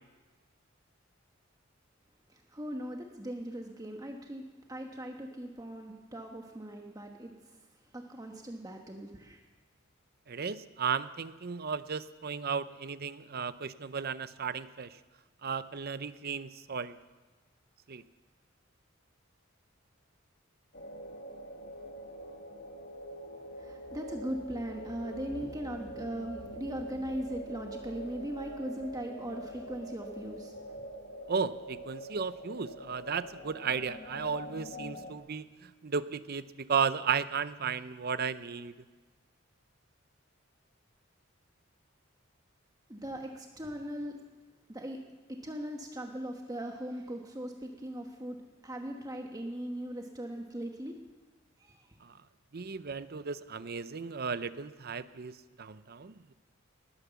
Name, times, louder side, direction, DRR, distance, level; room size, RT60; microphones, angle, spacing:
voice 1, 2.3-7.6 7.9-9.4 23.5-30.8 42.9-44.2 44.7-45.0 45.3-48.4 48.6-51.0 51.6-52.0, equal, 20° right, 2 dB, 1.2 m, -39 dB
voice 2, 10.3-15.0 15.4-17.0 17.9-18.0 31.3-38.7 52.0-52.1 52.5-56.3, right 6 dB, 50° right, 14 dB, 0.7 m, -35 dB
sound 1, 20.7-35.2, right 1 dB, 55° left, 1.6 m, -44 dB
19.5 x 9.8 x 7.1 m, 1.3 s
head